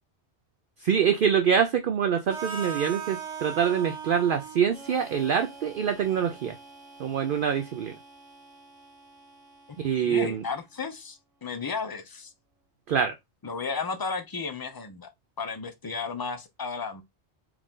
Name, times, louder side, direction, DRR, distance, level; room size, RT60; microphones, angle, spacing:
voice 1, 0.8-6.5 7.0-8.0 9.8-10.4 12.9-13.1, right 7 dB, 60° right, 0.6 m, -25 dB
Harmonica, 2.3-10.2, right 6 dB, 90° right, 1.7 m, -41 dB
voice 2, 10.0-12.3 13.4-15.1 15.4-17.0, left 4 dB, 30° left, 0.4 m, -33 dB
4.7 x 2.5 x 3.6 m
omnidirectional pair, 1.2 m